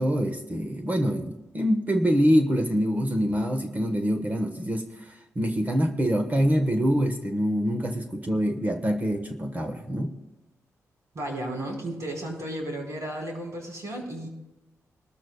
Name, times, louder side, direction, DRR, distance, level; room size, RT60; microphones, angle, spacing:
voice 1, 0.0-10.1, equal, 25° right, 6 dB, 1.2 m, -25 dB
voice 2, 11.1-14.3, right 1 dB, 60° right, 1 dB, 4.7 m, -34 dB
21.0 x 13.5 x 2.3 m, 0.98 s
cardioid pair, 90°, 6 cm